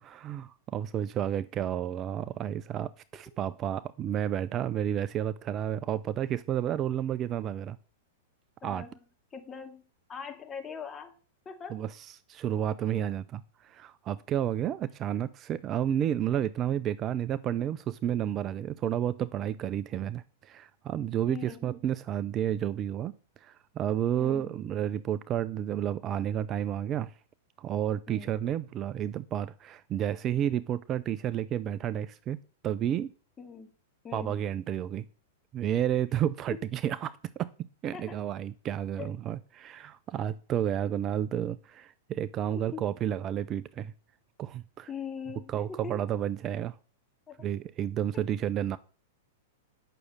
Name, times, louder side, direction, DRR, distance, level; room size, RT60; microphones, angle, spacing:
voice 1, 0.0-7.8 8.6-8.9 11.7-11.9 12.3-23.1 23.4-27.1 27.6-32.4 32.6-33.1 34.1-35.1 35.5-37.5 37.8-43.9 44.4-44.9 45.5-46.7 47.4-48.8, right 10 dB, 30° right, 0.5 m, -31 dB
voice 2, 8.6-9.0 9.3-9.8 10.1-11.2 11.5-11.9 12.9-13.1 15.7-15.9 21.3-21.6 24.1-24.5 28.1-28.4 33.4-33.7 34.0-34.4 37.9-38.2 39.0-39.1 42.5-42.8 44.9-46.1 47.3-47.4, left 6 dB, 20° left, 2.2 m, -42 dB
9.1 x 6.4 x 8.6 m
figure-of-eight pair, 100°, 0 cm